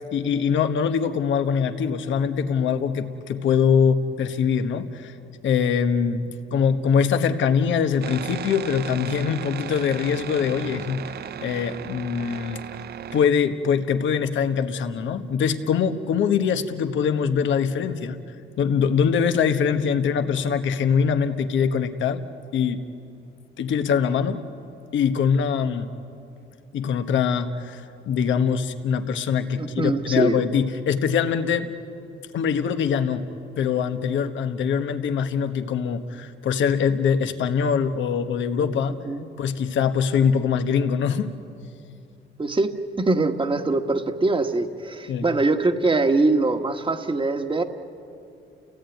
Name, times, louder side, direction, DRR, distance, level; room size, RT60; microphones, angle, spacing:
voice 1, 0.1-5.1 5.4-11.0 11.4-12.6 13.1-18.2 18.6-22.2 22.5-22.8 23.6-24.4 24.9-25.9 26.7-31.7 32.3-33.2 33.6-39.0 39.4-41.3 45.1-45.2, left 7 dB, 75° left, 8 dB, 1.3 m, -23 dB
sound 1, 8.0-13.3, right 9 dB, 55° right, 0.6 m, -35 dB
voice 2, 29.6-30.4 39.0-39.3 42.4-47.6, right 3 dB, 25° right, 6 dB, 1.6 m, -23 dB
30.0 x 17.0 x 9.3 m, 2.6 s
cardioid pair, 90°, 20 cm